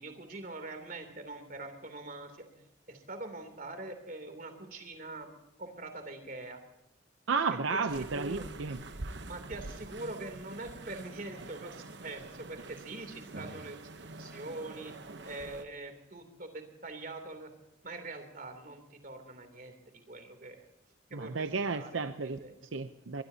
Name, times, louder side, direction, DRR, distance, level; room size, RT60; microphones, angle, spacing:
voice 1, 0.0-2.3 2.9-5.3 5.6-6.6 7.7-7.9 8.1-8.5 9.2-13.8 14.2-14.9 15.2-17.5 17.8-20.6 21.1-21.4 21.7-22.6, right 2 dB, 45° right, 6 dB, 3.1 m, -43 dB
voice 2, 7.3-8.8 21.1-22.4 22.7-23.2, right 4 dB, 85° right, 9 dB, 0.7 m, -32 dB
sound 1, 7.9-15.6, right 2 dB, 65° right, 1.0 m, -46 dB
22.5 x 21.5 x 2.8 m, 0.95 s
head